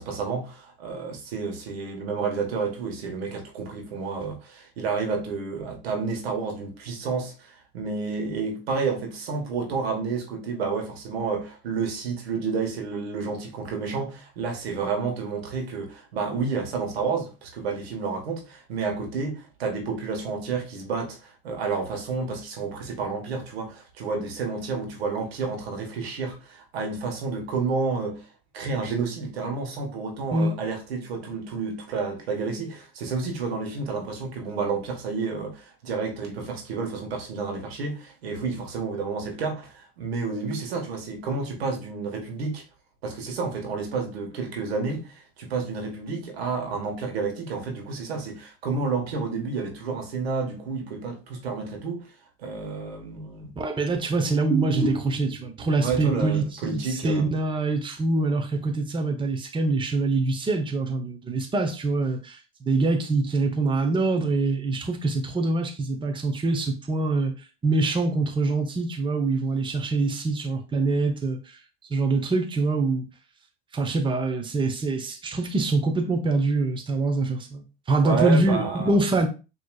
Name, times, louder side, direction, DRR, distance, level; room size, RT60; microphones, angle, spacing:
voice 1, 0.0-28.3 28.5-42.6 43.0-52.1 52.4-53.6 55.8-57.3 78.0-79.0, right 4 dB, 80° right, 1.4 m, -30 dB
voice 2, 53.6-67.3 67.6-71.6 71.9-73.1 73.7-79.3, right 3 dB, 15° right, 0.9 m, -24 dB
6.1 x 3.1 x 2.3 m
hypercardioid pair, 85°, 31 cm